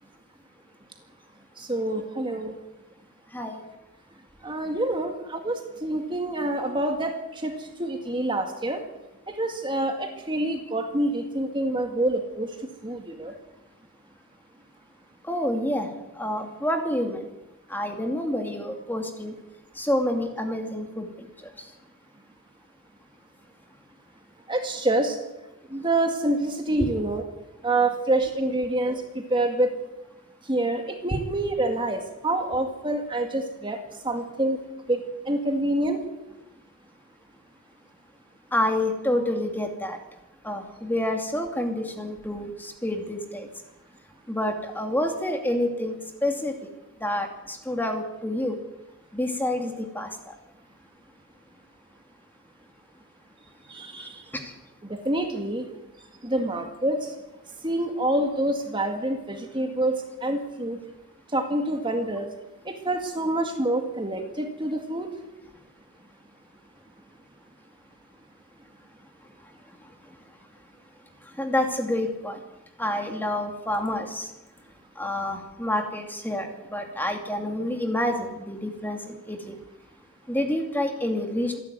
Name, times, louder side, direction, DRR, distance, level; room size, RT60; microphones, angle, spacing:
voice 1, 1.6-2.5 4.4-7.5 7.8-8.8 9.4-12.5 12.8-13.3 24.5-25.2 25.7-27.2 27.6-28.9 29.3-29.7 30.5-33.8 34.0-34.6 34.9-35.0 35.3-36.0 53.7-54.2 55.1-55.7 56.2-57.0 57.6-60.8 61.3-62.3 62.7-65.1, right 1 dB, 20° right, 4 dB, 2.0 m, -26 dB
voice 2, 15.3-15.9 16.2-17.2 17.7-19.3 19.8-21.1 26.8-26.9 38.5-40.0 40.4-43.5 44.3-45.9 46.2-46.5 47.0-48.6 49.1-50.1 71.4-72.4 72.8-74.3 75.0-79.0 79.3-79.5 80.3-81.6, left 1 dB, 10° left, 4 dB, 2.5 m, -28 dB
27.0 x 11.5 x 9.5 m, 1.0 s
head